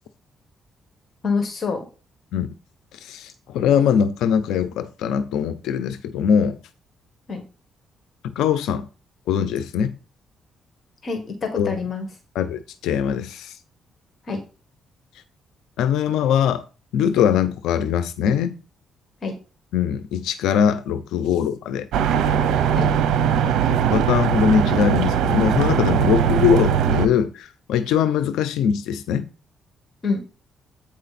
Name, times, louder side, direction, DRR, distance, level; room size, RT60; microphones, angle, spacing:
voice 1, 1.2-1.8 7.3-7.4 11.0-12.1 14.3-14.4 19.2-19.3 22.7-22.9 30.0-30.2, left 4 dB, 50° left, 1.6 m, -26 dB
voice 2, 2.9-6.6 8.2-8.9 9.3-9.9 11.6-11.7 12.3-13.6 15.8-16.6 16.9-18.6 19.7-21.9 23.4-29.3, left 8 dB, 85° left, 0.6 m, -22 dB
sound 1, 21.9-27.1, right 8 dB, 80° right, 0.7 m, -20 dB
8.5 x 5.0 x 4.2 m
cardioid pair, 90°, 0 cm